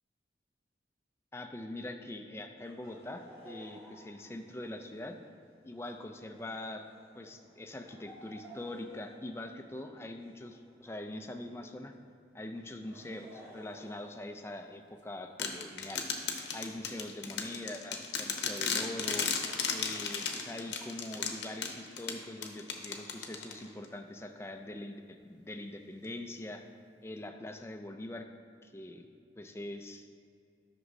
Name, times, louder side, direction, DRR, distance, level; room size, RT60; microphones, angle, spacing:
voice 1, 1.3-5.2 5.6-6.9 7.1-11.9 12.3-16.1 16.5-19.3 19.7-26.7 27.0-28.3 28.6-29.1 29.4-30.1, left 1 dB, 15° left, 5 dB, 0.4 m, -43 dB
Laughter, 2.6-11.7 12.5-14.9, equal, 15° right, 1.4 m, -56 dB
sound 1, 15.4-23.9, left 6 dB, 85° left, 0.7 m, -35 dB
11.0 x 6.1 x 2.7 m, 2.3 s
head